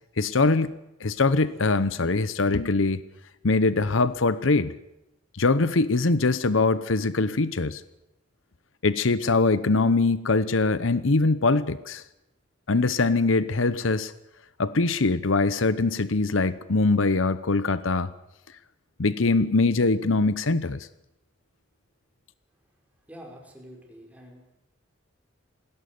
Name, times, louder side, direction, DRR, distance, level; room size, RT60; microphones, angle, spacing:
voice 1, 0.2-3.0 3.4-4.7 5.3-7.8 8.8-12.0 12.7-14.1 14.6-18.1 19.0-20.8, left 3 dB, 75° left, 15 dB, 0.9 m, -23 dB
voice 2, 23.0-24.5, equal, 5° right, 1 dB, 5.6 m, -47 dB
20.0 x 17.0 x 9.5 m, 0.89 s
head